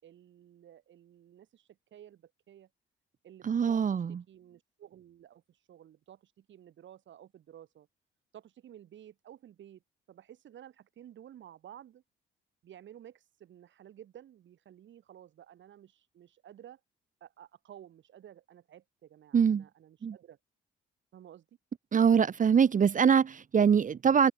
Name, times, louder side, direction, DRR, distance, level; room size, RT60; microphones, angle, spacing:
voice 1, 0.0-2.7 3.2-4.0 4.3-7.9 8.3-9.8 10.1-12.0 12.6-16.8 17.2-20.4 21.1-21.5, right 10 dB, 70° right, 6.0 m, -53 dB
voice 2, 3.4-4.2 19.3-19.7 20.0-20.2 21.9-24.3, right 7 dB, 40° right, 1.1 m, -24 dB
cardioid pair, 90°, 20 cm